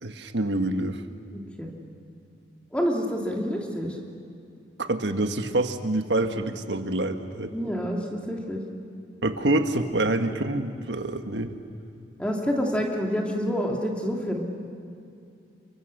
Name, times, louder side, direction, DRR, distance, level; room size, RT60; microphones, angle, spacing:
voice 1, 0.0-1.0 4.8-7.5 9.2-11.6, right 2 dB, 85° right, 7 dB, 1.5 m, -26 dB
voice 2, 1.3-1.7 2.7-4.0 7.5-8.6 12.2-14.4, equal, 5° left, 0 dB, 2.7 m, -28 dB
30.0 x 23.5 x 6.6 m, 2.5 s
head